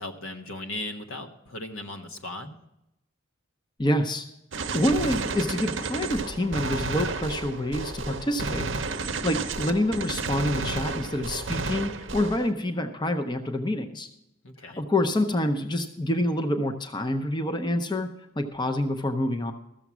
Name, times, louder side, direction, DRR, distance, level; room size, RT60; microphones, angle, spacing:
voice 1, 0.0-2.6 14.4-14.8, left 2 dB, 80° left, 5 dB, 1.2 m, -37 dB
voice 2, 3.8-4.2 4.6-8.7 9.2-14.1 14.6-18.1 18.4-19.5, left 1 dB, 20° left, 6 dB, 0.6 m, -27 dB
Gunshot gunfire, 4.5-12.5, right 3 dB, 60° right, 0.7 m, -32 dB
14.0 x 7.1 x 6.0 m, 0.86 s
head